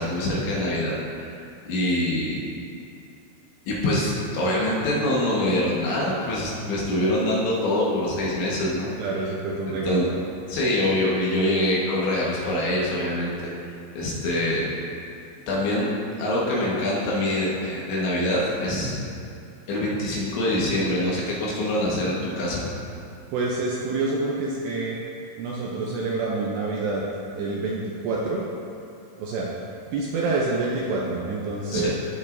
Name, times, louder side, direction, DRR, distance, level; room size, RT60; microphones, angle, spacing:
voice 1, 0.0-1.4 1.7-2.4 3.7-8.9 9.7-10.1 10.5-14.7 15.5-15.9 16.2-19.0 19.7-22.7 31.7-31.9, left 1 dB, 70° left, -5 dB, 3.6 m, -25 dB
voice 2, 9.0-10.1 23.3-25.0 25.4-27.0 27.3-28.4 29.2-29.5 29.9-31.9, right 3 dB, 80° right, -3 dB, 2.5 m, -27 dB
16.0 x 6.5 x 2.7 m, 2.7 s
omnidirectional pair, 5.6 m